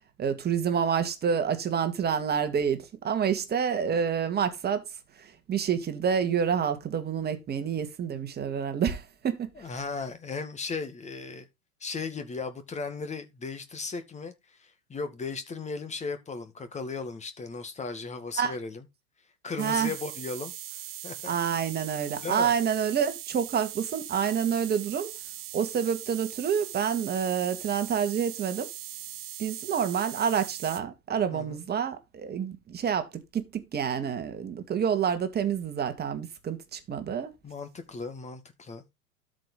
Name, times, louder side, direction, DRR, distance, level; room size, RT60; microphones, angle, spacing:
voice 1, 0.2-4.8 5.2-9.7 18.4-18.5 19.6-19.9 21.2-25.1 25.5-28.7 29.4-37.3, right 7 dB, 20° right, 2.0 m, -28 dB
voice 2, 9.6-11.5 11.8-18.8 19.4-21.3 22.2-22.5 31.3-31.6 37.4-38.8, left 4 dB, 15° left, 1.9 m, -36 dB
sound 1, 19.6-30.8, right 13 dB, 40° right, 1.7 m, -40 dB
12.5 x 5.3 x 3.9 m
figure-of-eight pair, 95°, 44 cm